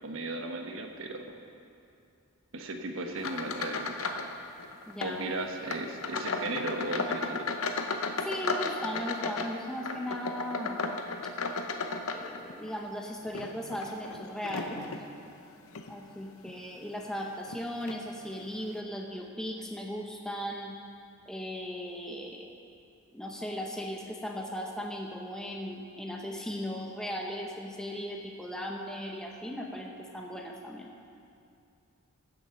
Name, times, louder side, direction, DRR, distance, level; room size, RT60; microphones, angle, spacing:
voice 1, 0.0-1.3 2.5-4.1 5.0-7.5, right 2 dB, 70° right, 4 dB, 1.1 m, -36 dB
sound 1, 3.2-4.3 4.6-5.2 5.6-12.7 13.2-15.1 15.7-15.9 16.5-16.6 17.5-17.6 17.9-18.0, left 3 dB, 80° left, 0.8 m, -34 dB
voice 2, 4.9-5.2 8.2-10.9 12.1-14.9 15.9-20.8 21.3-22.5 23.1-30.9, equal, 5° left, 0 dB, 0.8 m, -37 dB
15.0 x 7.5 x 5.7 m, 2.5 s
head